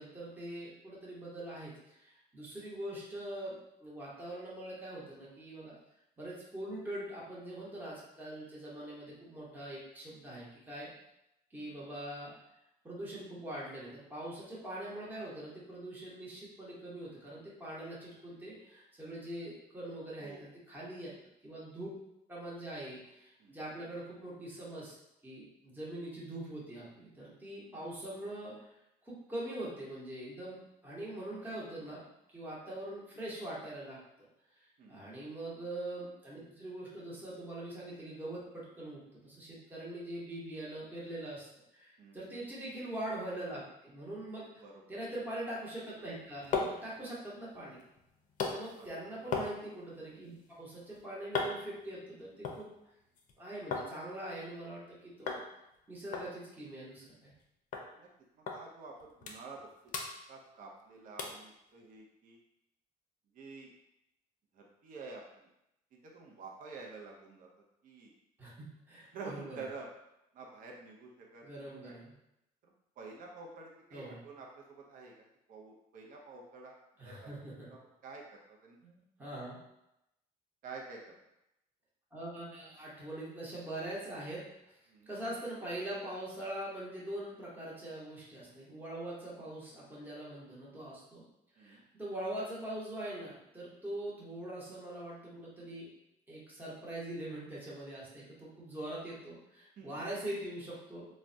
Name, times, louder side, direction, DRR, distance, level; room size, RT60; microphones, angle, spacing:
voice 1, 0.0-5.8 6.2-10.9 11.5-12.3 12.8-21.1 21.4-21.9 22.3-24.9 25.2-28.7 29.0-32.0 32.3-34.0 34.6-41.5 41.7-44.5 44.9-47.8 48.4-52.7 53.4-55.4 55.9-57.3 68.4-69.6 71.4-72.1 73.9-74.2 77.0-77.7 78.8-79.6 82.1-84.8 85.1-91.2 91.6-95.9 96.3-101.1, right 1 dB, 10° right, -6 dB, 0.8 m, -43 dB
voice 2, 34.8-35.1 42.0-42.4 44.6-44.7 46.6-46.9 48.8-49.0 57.9-58.1 58.4-59.9 60.3-62.4 63.3-63.7 64.5-65.2 66.0-67.5 67.8-68.1 69.1-69.9 70.3-71.9 72.6-76.7 77.0-77.4 77.7-78.8 80.6-81.2 84.9-85.1 91.6-91.8 99.8-100.0, right 4 dB, 55° right, -1 dB, 0.5 m, -49 dB
sound 1, 46.0-53.9 54.2-54.9 55.3-55.5 55.7-55.8 56.1-57.4 57.7-57.9 58.5-58.6 59.0-59.6 59.9-60.8 61.2-61.5 62.0-62.1, left 4 dB, 50° left, 0.5 m, -39 dB
3.3 x 2.1 x 2.5 m, 0.86 s
cardioid pair, 110°, 17 cm